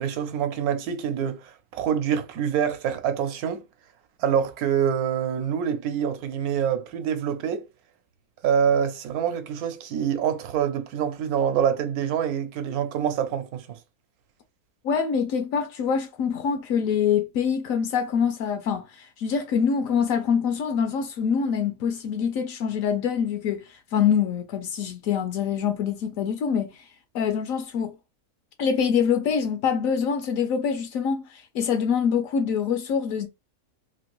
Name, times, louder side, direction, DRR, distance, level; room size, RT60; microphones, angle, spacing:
voice 1, 0.0-3.6 4.2-7.7 8.4-13.8, right 8 dB, 85° right, 1.1 m, -26 dB
voice 2, 14.8-26.8 27.1-27.9 28.6-33.3, left 7 dB, 70° left, 0.9 m, -25 dB
3.0 x 2.5 x 2.9 m
omnidirectional pair, 1.6 m